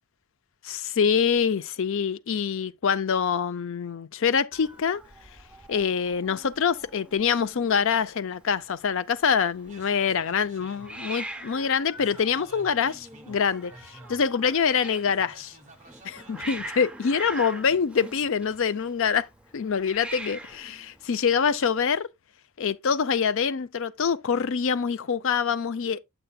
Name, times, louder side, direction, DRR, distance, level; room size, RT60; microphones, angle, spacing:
voice 1, 0.6-5.0 5.7-15.5 16.0-19.3 19.5-22.1 22.6-26.0, left 6 dB, 60° left, 0.5 m, -25 dB
Hiss, 4.5-21.8, right 1 dB, 5° right, 0.5 m, -43 dB
sound 1, 9.4-16.5, right 2 dB, 35° right, 1.4 m, -52 dB
8.7 x 8.0 x 2.3 m
head